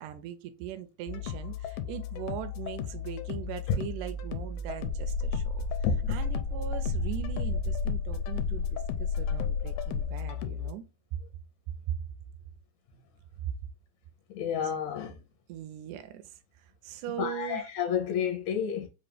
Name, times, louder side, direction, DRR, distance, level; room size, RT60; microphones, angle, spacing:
voice 1, 0.0-5.6 6.1-10.8 11.9-12.0 14.6-15.0 15.5-17.7, right 10 dB, 85° right, 2.0 m, -40 dB
sound 1, 1.1-10.7, left 4 dB, 90° left, 2.1 m, -37 dB
sound 2, 4.8-10.0, left 6 dB, 55° left, 2.0 m, -32 dB
voice 2, 5.8-6.1 14.3-15.2 17.2-18.9, left 7 dB, 75° left, 1.9 m, -30 dB
5.1 x 2.5 x 3.3 m
omnidirectional pair, 3.5 m